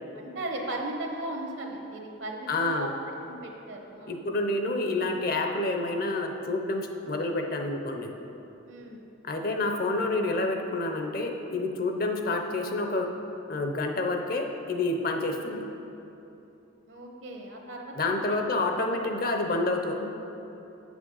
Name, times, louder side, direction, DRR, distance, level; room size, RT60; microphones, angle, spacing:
voice 1, 0.1-4.2 8.6-9.1 16.9-18.4 18.8-18.9, right 1 dB, 70° right, 1 dB, 1.1 m, -37 dB
voice 2, 2.5-2.9 4.1-8.2 9.2-13.1 13.5-15.6 17.9-20.1, left 2 dB, 50° left, 4 dB, 0.7 m, -28 dB
7.9 x 6.2 x 5.5 m, 2.9 s
head